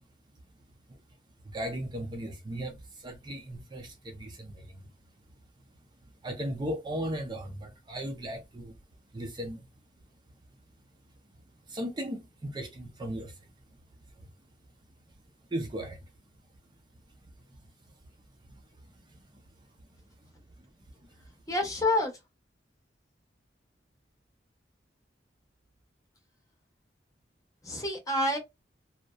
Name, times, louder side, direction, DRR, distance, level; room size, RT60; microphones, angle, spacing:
voice 1, 1.4-4.9 6.2-8.8 9.1-9.7 11.7-13.5 14.2-14.3 15.5-16.1 18.5-19.4 20.6-20.7, right 1 dB, 25° right, 0.5 m, -37 dB
voice 2, 21.5-22.1 27.7-28.4, left 1 dB, 20° left, 0.8 m, -27 dB
2.6 x 2.1 x 2.2 m
head